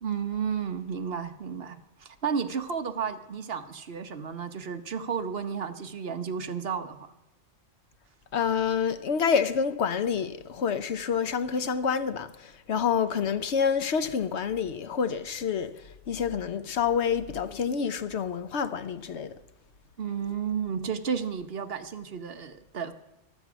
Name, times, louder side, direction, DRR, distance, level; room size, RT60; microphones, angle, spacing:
voice 1, 0.0-7.1 20.0-22.9, right 7 dB, 55° right, 1.1 m, -32 dB
voice 2, 8.3-15.7 16.1-19.3, left 6 dB, 70° left, 1.0 m, -28 dB
15.0 x 12.5 x 6.1 m
omnidirectional pair, 1.2 m